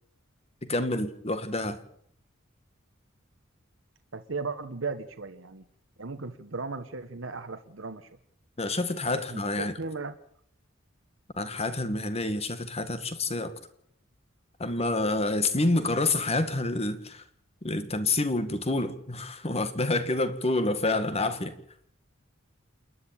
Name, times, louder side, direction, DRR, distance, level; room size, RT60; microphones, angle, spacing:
voice 1, 0.6-1.8 8.6-9.7 11.4-13.5 14.6-17.2 17.6-21.5, left 2 dB, 30° left, 1.8 m, -28 dB
voice 2, 4.1-5.6 6.0-8.1 9.3-10.2, right 4 dB, 75° right, 1.2 m, -36 dB
28.5 x 10.5 x 8.9 m
head